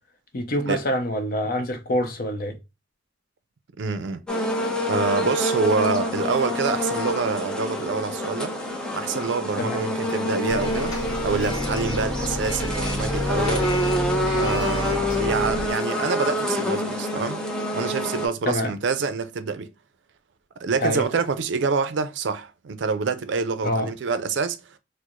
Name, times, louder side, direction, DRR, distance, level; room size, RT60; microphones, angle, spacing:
voice 1, 0.3-2.6 9.6-9.8 18.4-18.7 20.8-21.0 23.6-23.9, left 1 dB, 50° left, 0.7 m, -25 dB
voice 2, 3.8-4.2 4.9-8.5 8.9-10.9 11.2-13.7 14.4-17.4 17.7-19.7 20.6-24.6, right 4 dB, 70° right, 0.4 m, -26 dB
sound 1, 4.3-18.3, left 1 dB, 5° left, 0.5 m, -27 dB
Bus, 10.5-15.7, equal, 20° left, 0.9 m, -30 dB
4.5 x 2.0 x 2.4 m
head